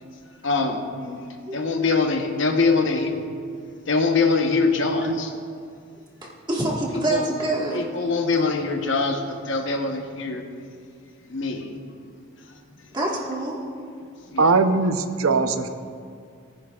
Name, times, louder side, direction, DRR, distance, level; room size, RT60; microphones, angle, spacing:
voice 1, 0.4-0.8 1.5-3.1 3.9-5.3 7.1-7.2 7.7-10.4 11.3-11.8 14.3-14.5, left 4 dB, 55° left, 4 dB, 0.9 m, -23 dB
voice 2, 6.2-8.1 12.9-13.6, right 2 dB, 20° right, -3 dB, 1.5 m, -26 dB
voice 3, 14.4-15.7, right 3 dB, 70° right, 9 dB, 0.6 m, -20 dB
18.5 x 9.9 x 2.4 m, 2.2 s
head